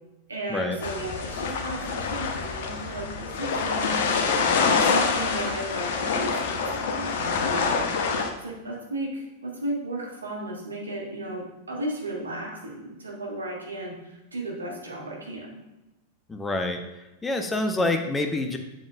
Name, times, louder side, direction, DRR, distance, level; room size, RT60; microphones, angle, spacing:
voice 1, 0.3-4.0 4.9-7.7 8.4-15.6, right 1 dB, 75° right, -1 dB, 1.6 m, -34 dB
sound 1, 0.8-8.3, left 5 dB, 55° left, 0.7 m, -26 dB
voice 2, 16.3-16.8 17.2-18.6, left 2 dB, 15° left, 5 dB, 0.7 m, -26 dB
7.3 x 7.3 x 2.4 m, 1.0 s
figure-of-eight pair, 90°, 0 cm